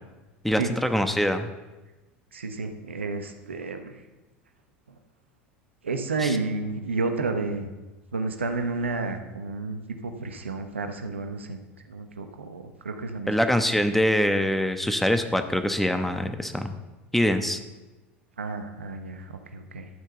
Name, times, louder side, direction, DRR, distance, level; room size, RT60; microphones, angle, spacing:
voice 1, 0.4-1.5 6.2-6.4 13.3-16.7 17.1-17.6, equal, 5° left, 7 dB, 1.1 m, -24 dB
voice 2, 2.3-4.0 5.8-7.7 8.1-11.6 11.9-13.3 18.4-19.9, right 3 dB, 85° right, 6 dB, 1.0 m, -31 dB
12.5 x 5.8 x 7.0 m, 1.1 s
hypercardioid pair, 75°, 6 cm